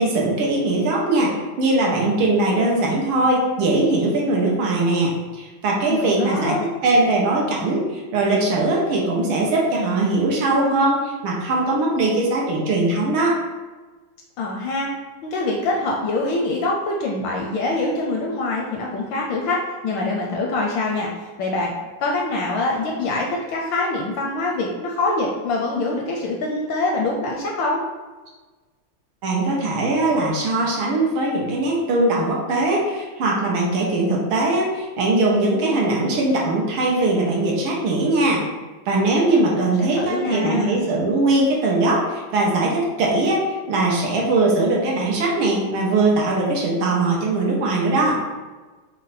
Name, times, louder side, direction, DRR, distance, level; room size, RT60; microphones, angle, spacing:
voice 1, 0.0-13.4 29.2-38.4 38.9-48.2, right 2 dB, 70° right, -3 dB, 1.6 m, -20 dB
voice 2, 5.9-6.6 14.4-14.9 15.2-21.7 22.0-27.8 39.6-40.8, left 2 dB, 75° left, -1 dB, 1.1 m, -24 dB
5.0 x 2.2 x 4.1 m, 1.3 s
omnidirectional pair, 2.4 m